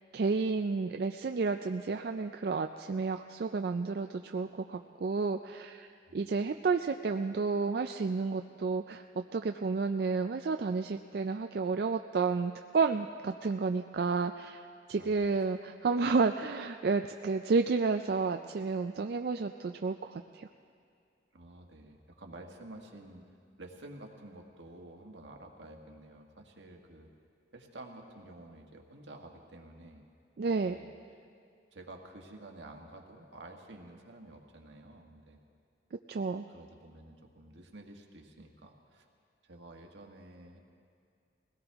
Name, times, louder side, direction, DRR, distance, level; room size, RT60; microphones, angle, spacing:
voice 1, 0.1-20.5 30.4-30.8 35.9-36.5, right 4 dB, 55° right, 6 dB, 0.4 m, -31 dB
voice 2, 14.9-15.5 21.3-23.2 23.6-27.1 27.5-30.1 30.6-30.9 31.7-35.4 36.5-39.1 39.4-40.6, right 2 dB, 80° right, 2 dB, 1.6 m, -50 dB
21.5 x 17.0 x 3.5 m, 2.4 s
head